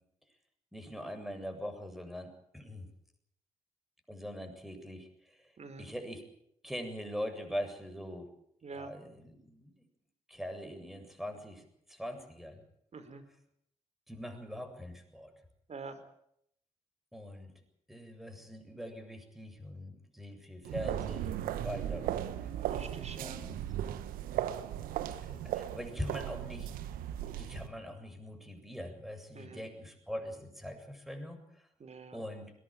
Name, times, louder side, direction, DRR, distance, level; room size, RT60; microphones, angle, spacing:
voice 1, 0.7-2.9 4.1-5.4 5.8-6.2 6.6-8.3 8.7-9.7 10.3-12.6 14.1-15.3 17.1-17.5 17.9-22.2 22.6-22.7 23.2-23.6 25.3-26.7 27.3-31.7 32.1-32.5, equal, ahead, 8 dB, 7.6 m, -42 dB
voice 2, 8.6-8.9 12.9-13.2 15.7-16.0 22.7-23.4 29.3-29.6 31.8-32.2, right 4 dB, 50° right, 10 dB, 4.5 m, -45 dB
sound 1, 20.6-27.7, right 11 dB, 75° right, 1.3 m, -37 dB
22.0 x 19.0 x 9.0 m, 0.73 s
hypercardioid pair, 40°, 15 cm